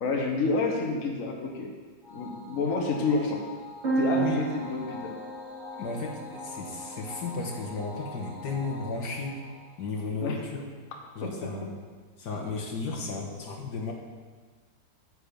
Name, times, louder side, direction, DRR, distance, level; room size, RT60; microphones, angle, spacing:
voice 1, 0.0-1.7 2.1-3.4 4.0-5.1 10.2-10.4 11.2-11.3, left 3 dB, 50° left, 1 dB, 1.5 m, -28 dB
sound 1, 2.0-10.6, left 2 dB, 65° right, 3.1 m, -45 dB
sound 2, 3.8-7.6, right 4 dB, 40° right, 2.5 m, -33 dB
voice 2, 5.7-9.4 9.8-10.6 11.2-11.7 12.2-13.9, left 3 dB, 70° left, -1 dB, 1.9 m, -34 dB
9.7 x 8.1 x 5.2 m, 1.5 s
omnidirectional pair, 1.9 m